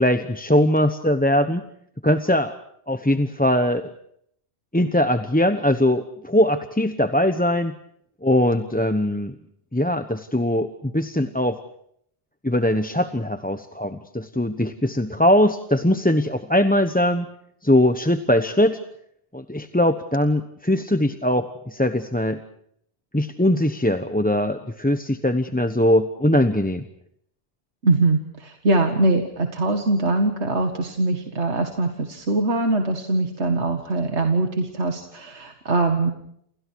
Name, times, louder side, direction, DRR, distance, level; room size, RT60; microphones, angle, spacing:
voice 1, 0.0-1.6 2.0-2.5 2.9-3.9 4.7-7.8 8.2-9.3 9.7-11.6 12.4-17.3 17.6-18.8 19.3-22.4 23.1-26.8, left 1 dB, 10° left, 9 dB, 0.9 m, -21 dB
voice 2, 27.8-36.1, right 2 dB, 75° right, 5 dB, 2.2 m, -22 dB
30.0 x 28.5 x 4.7 m, 0.69 s
omnidirectional pair, 1.2 m